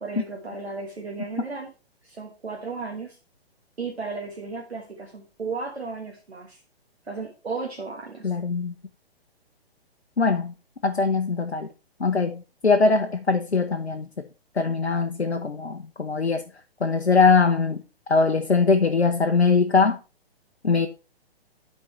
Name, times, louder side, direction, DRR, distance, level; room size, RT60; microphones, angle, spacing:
voice 1, 0.0-1.7 2.0-3.2 3.8-6.6 7.1-8.3, right 4 dB, 80° right, 1.5 m, -34 dB
voice 2, 8.2-8.7 10.2-10.5 10.8-11.7 12.0-14.3 14.5-16.4 16.8-17.8 18.1-20.0 20.6-20.9, left 4 dB, 90° left, 0.7 m, -21 dB
11.5 x 4.5 x 3.2 m
figure-of-eight pair, 130°, 31 cm